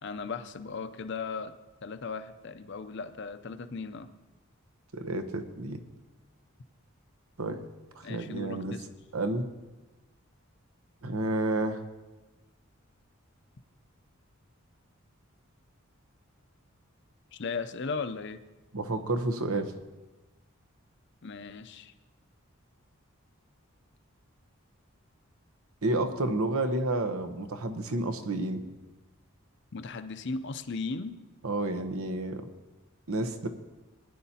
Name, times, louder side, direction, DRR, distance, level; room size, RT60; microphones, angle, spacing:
voice 1, 0.0-1.5 1.8-4.1 8.0-8.8 17.3-18.4 21.2-21.9 29.7-31.2, left 4 dB, 55° left, 10 dB, 0.6 m, -37 dB
voice 2, 4.9-5.8 7.4-7.7 7.9-8.8 9.1-9.5 11.0-11.8 18.7-19.7 25.8-28.6 31.4-32.5 33.1-33.5, right 2 dB, 80° right, 7 dB, 0.9 m, -30 dB
20.0 x 10.0 x 2.9 m, 1.1 s
head